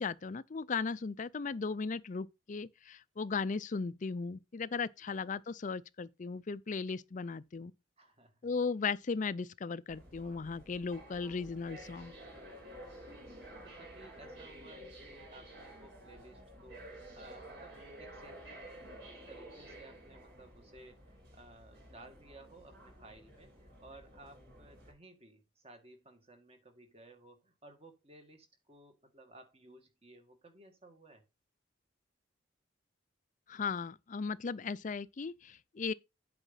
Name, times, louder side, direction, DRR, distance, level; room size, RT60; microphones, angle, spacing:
voice 1, 0.0-7.7 8.4-12.1 33.5-35.9, left 4 dB, 40° left, 0.4 m, -37 dB
voice 2, 8.0-8.4 13.0-13.2 13.6-18.6 19.3-31.2, right 2 dB, 30° right, 2.0 m, -57 dB
sound 1, 9.9-24.9, right 1 dB, 60° right, 5.4 m, -52 dB
8.2 x 5.0 x 5.7 m
head